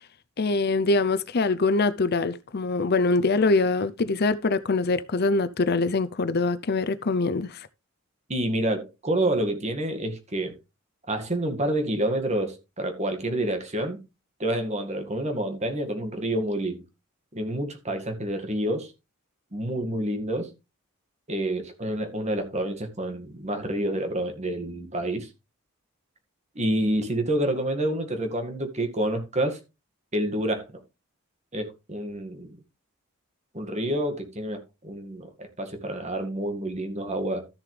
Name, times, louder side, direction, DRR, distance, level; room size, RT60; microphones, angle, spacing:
voice 1, 0.4-7.6, left 3 dB, 45° left, 0.6 m, -24 dB
voice 2, 8.3-10.6 11.1-14.0 14.4-16.8 17.3-18.9 19.5-20.5 21.3-25.3 26.6-29.6 30.1-30.7 31.5-32.5 33.5-37.5, right 1 dB, 30° right, 2.0 m, -28 dB
13.5 x 7.2 x 3.3 m
head